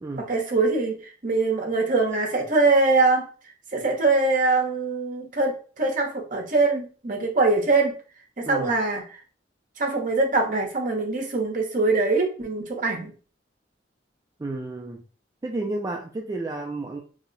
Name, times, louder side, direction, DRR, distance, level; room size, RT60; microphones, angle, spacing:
voice 1, 0.2-3.3 3.7-7.9 8.4-9.0 9.8-13.1, right 3 dB, 50° right, 2 dB, 0.8 m, -23 dB
voice 2, 14.4-15.0 15.4-17.0, right 2 dB, 20° right, 0 dB, 0.3 m, -31 dB
2.8 x 2.1 x 3.8 m, 0.38 s
head